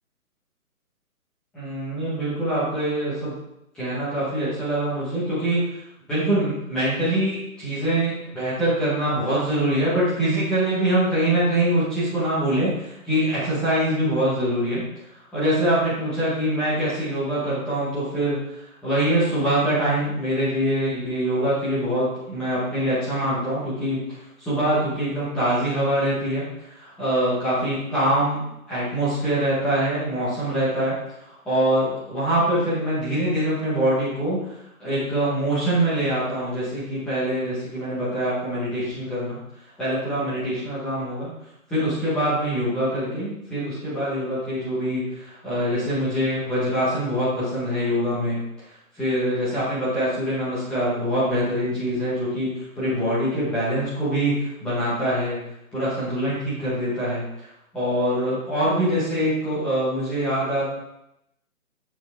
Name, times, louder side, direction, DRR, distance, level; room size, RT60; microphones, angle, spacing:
voice 1, 1.5-3.4 3.7-5.6 6.1-12.7 13.1-14.8 15.3-18.4 18.8-24.0 24.4-26.4 26.8-28.4 28.7-31.0 31.5-34.4 34.8-39.4 39.8-41.3 41.7-45.0 45.3-48.4 49.0-54.3 54.6-55.4 55.7-57.2 57.7-60.6, right 1 dB, ahead, -11 dB, 0.9 m, -24 dB
7.2 x 6.0 x 3.4 m, 0.83 s
hypercardioid pair, 165°, 43 cm